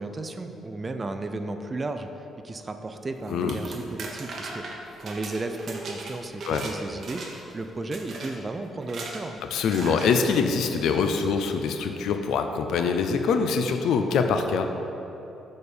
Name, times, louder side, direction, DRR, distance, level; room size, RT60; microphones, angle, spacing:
voice 1, 0.0-9.4, right 2 dB, 30° right, 7 dB, 0.4 m, -34 dB
sound 1, 3.3-6.7 7.0-7.5 7.9-8.3 8.8-9.2 9.7-10.1, right 3 dB, 55° right, 0.9 m, -38 dB
voice 2, 9.5-14.7, left 5 dB, 80° left, 6 dB, 0.5 m, -24 dB
6.6 x 4.3 x 5.1 m, 2.9 s
cardioid pair, 90°, 0 cm